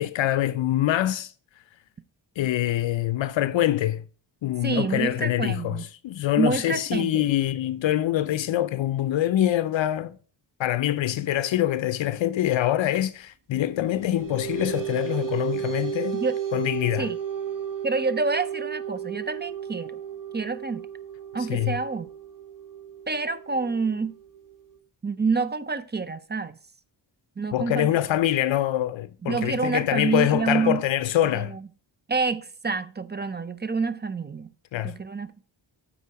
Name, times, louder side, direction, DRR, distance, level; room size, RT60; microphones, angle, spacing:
voice 1, 0.0-1.3 2.4-4.0 4.4-10.2 10.6-16.2 16.5-17.1 21.5-21.8 27.5-31.6 34.7-35.0, left 13 dB, 75° left, 0.5 m, -25 dB
voice 2, 4.6-5.8 6.4-7.2 16.2-16.3 17.0-17.2 17.8-20.0 20.3-20.9 21.3-22.1 23.1-24.1 25.0-26.6 27.4-28.0 29.2-30.8 31.3-31.6 32.1-34.5 34.8-35.4, right 4 dB, 25° right, 0.5 m, -27 dB
sound 1, 13.8-24.8, right 9 dB, 45° right, 1.1 m, -34 dB
8.3 x 4.2 x 4.7 m
cardioid pair, 65°, 46 cm